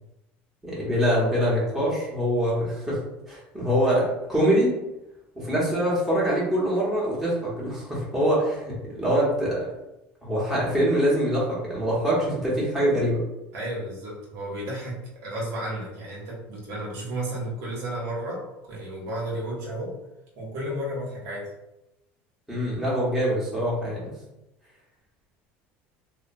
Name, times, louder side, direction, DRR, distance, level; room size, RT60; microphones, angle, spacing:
voice 1, 0.6-3.0 3.3-4.7 5.3-9.6 10.2-13.2 22.5-24.1, equal, 5° right, -8 dB, 1.1 m, -24 dB
voice 2, 13.5-19.9 20.4-21.5, right 1 dB, 65° right, -4 dB, 1.0 m, -33 dB
2.7 x 2.2 x 2.6 m, 0.91 s
supercardioid pair, 110°, 6 cm